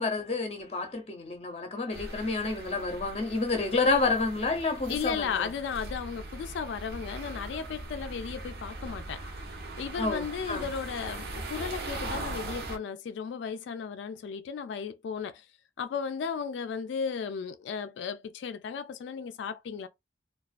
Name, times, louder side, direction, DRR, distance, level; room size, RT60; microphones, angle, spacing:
voice 1, 0.0-5.4 10.0-10.7, left 3 dB, 35° left, 0.5 m, -29 dB
sound 1, 1.9-12.8, right 2 dB, 60° right, 0.6 m, -40 dB
voice 2, 4.8-9.3 9.8-15.5 15.8-19.9, left 6 dB, 90° left, 0.3 m, -35 dB
2.3 x 2.2 x 2.3 m
head